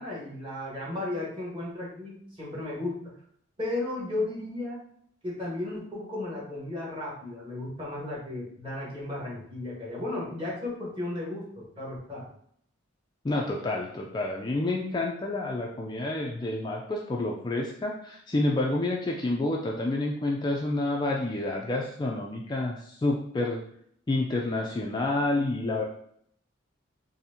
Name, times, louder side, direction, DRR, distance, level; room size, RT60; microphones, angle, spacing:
voice 1, 0.0-3.1 3.6-4.8 5.2-12.3, left 2 dB, 25° right, -5 dB, 1.3 m, -34 dB
voice 2, 13.2-23.6 24.1-25.8, left 2 dB, 20° left, -1 dB, 0.3 m, -29 dB
4.2 x 2.7 x 2.7 m, 0.66 s
head